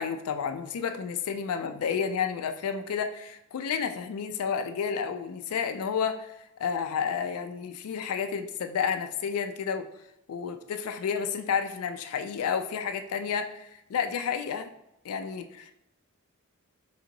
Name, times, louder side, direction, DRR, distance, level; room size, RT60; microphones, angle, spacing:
voice 1, 0.0-9.9 10.3-14.7 15.0-15.7, left 6 dB, 80° left, 8 dB, 0.4 m, -31 dB
3.4 x 2.8 x 3.8 m, 0.85 s
head